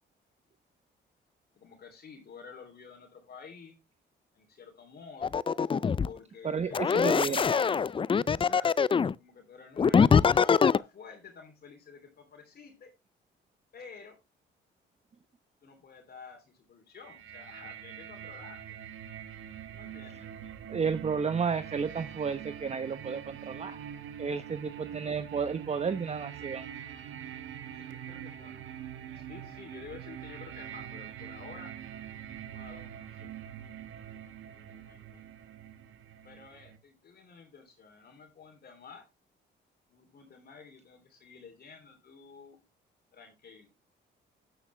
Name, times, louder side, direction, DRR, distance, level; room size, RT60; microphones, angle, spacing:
voice 1, 1.5-3.8 4.3-5.3 6.0-7.9 8.3-8.7 9.2-10.2 10.6-12.9 13.7-14.2 15.6-18.8 19.7-20.3 24.4-24.7 27.7-28.6 29.1-31.7 32.5-33.3 34.4-35.2 36.2-39.0 39.9-42.6 43.1-43.7, left 5 dB, 50° left, 3 dB, 3.2 m, -50 dB
Glitch Vinyl Scratch, 5.2-6.1 6.7-9.1 9.8-10.8, left 6 dB, 25° left, 0.4 m, -23 dB
voice 2, 6.4-7.4 20.7-23.8 24.2-26.7, right 6 dB, 35° right, 11 dB, 0.8 m, -32 dB
sound 1, 17.0-36.8, right 9 dB, 80° right, 1.5 m, -44 dB
10.0 x 8.9 x 3.2 m, 0.24 s
cardioid pair, 90°, 20 cm